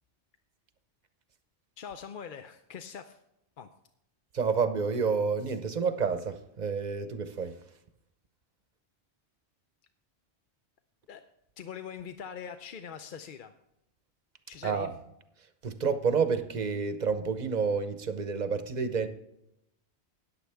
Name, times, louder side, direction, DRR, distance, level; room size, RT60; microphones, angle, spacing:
voice 1, 1.8-3.2 3.6-3.7 11.1-11.2 11.6-13.5 14.5-14.9, left 7 dB, 55° left, 0.7 m, -42 dB
voice 2, 4.3-7.6 14.6-14.9 15.6-19.1, right 5 dB, 45° right, 0.9 m, -29 dB
14.0 x 9.7 x 3.5 m
omnidirectional pair, 1.1 m